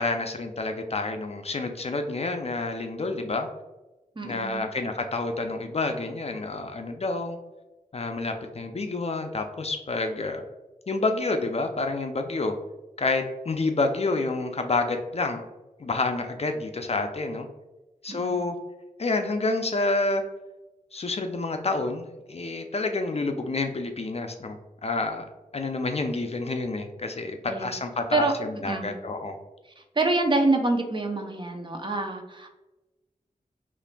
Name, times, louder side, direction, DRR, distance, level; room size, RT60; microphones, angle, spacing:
voice 1, 0.0-3.5 4.2-7.4 7.9-10.4 10.9-12.5 13.0-15.5 15.8-17.5 18.0-18.6 19.0-20.2 20.9-25.3 25.5-29.4, left 3 dB, 45° left, 5 dB, 0.4 m, -28 dB
voice 2, 4.2-4.6 18.1-18.4 27.5-27.7 28.1-28.3 28.6-29.0 29.8-32.5, right 2 dB, 35° right, 3 dB, 0.6 m, -26 dB
5.5 x 2.5 x 2.2 m, 1.1 s
wide cardioid pair, 55°, 15 cm